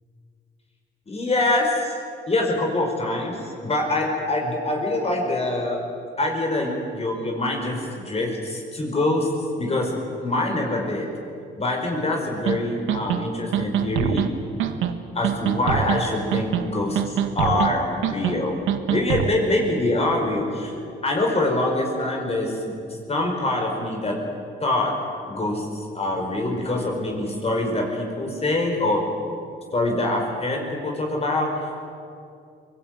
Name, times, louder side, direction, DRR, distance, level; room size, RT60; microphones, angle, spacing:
voice 1, 1.1-1.9 2.3-5.8 6.2-9.3 9.6-9.9 10.2-11.1 11.6-14.3 15.1-18.6 18.9-20.7 21.0-22.7 23.1-24.2 24.6-24.9 25.3-29.0 29.7-31.5, left 2 dB, 30° left, 1 dB, 5.1 m, -24 dB
sound 1, 12.5-12.6 12.9-13.2 13.5-14.3 14.6-14.9 15.2-16.0 16.3-16.7 17.0-17.7 18.0-18.4 18.7-19.3, right 10 dB, 85° right, 1.4 m, -23 dB
24.0 x 18.5 x 9.1 m, 2.5 s
cardioid pair, 90°, 20 cm